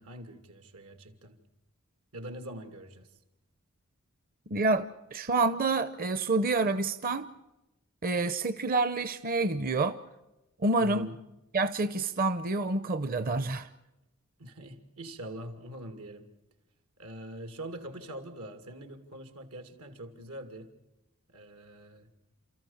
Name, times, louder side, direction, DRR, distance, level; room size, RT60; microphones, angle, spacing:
voice 1, 0.0-1.4 2.1-3.1 10.8-11.2 14.4-16.3 17.0-20.7 21.3-22.1, right 1 dB, 90° right, 7 dB, 2.6 m, -43 dB
voice 2, 4.5-7.3 8.0-10.0 10.6-11.1 11.5-13.7, right 3 dB, 40° right, 11 dB, 0.7 m, -28 dB
29.5 x 14.0 x 7.2 m, 0.99 s
head